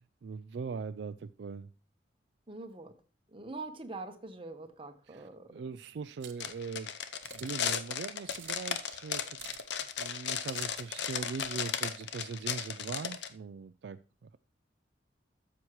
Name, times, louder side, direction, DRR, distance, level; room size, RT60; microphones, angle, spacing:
voice 1, 0.0-1.7 5.1-6.9 7.3-9.6 10.0-14.4, right 5 dB, 65° right, 11 dB, 0.3 m, -41 dB
voice 2, 2.5-2.9 3.3-5.7, right 3 dB, 30° right, 7 dB, 1.0 m, -44 dB
sound 1, 6.2-6.5 7.2-7.6 8.3-8.8 9.4-9.8 10.4-10.8 11.3-11.5, right 11 dB, 85° right, 0.9 m, -49 dB
sound 2, 6.4-13.3, left 8 dB, 70° left, 0.7 m, -35 dB
12.5 x 7.2 x 3.1 m, 0.38 s
head